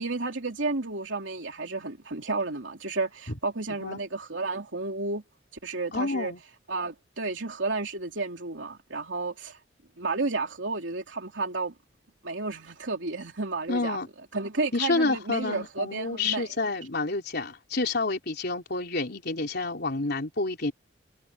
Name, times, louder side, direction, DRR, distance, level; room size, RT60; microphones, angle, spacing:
voice 1, 0.0-5.2 5.6-6.3 6.7-9.6 10.0-11.7 12.2-14.0 14.3-16.5, right 3 dB, 90° right, 3.0 m, -32 dB
voice 2, 5.9-6.4 13.7-14.1 14.7-20.7, left 3 dB, 60° left, 3.8 m, -29 dB
head